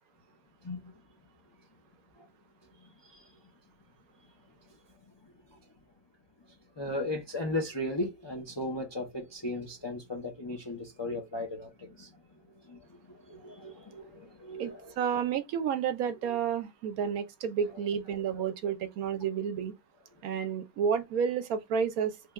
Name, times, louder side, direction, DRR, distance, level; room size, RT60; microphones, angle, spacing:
voice 1, 6.8-12.1 12.7-14.9 16.3-16.4 18.2-18.4, left 1 dB, 35° left, 0.4 m, -36 dB
voice 2, 14.6-19.7 20.2-22.3, right 7 dB, 75° right, 1.0 m, -31 dB
3.3 x 2.2 x 3.4 m
omnidirectional pair, 1.6 m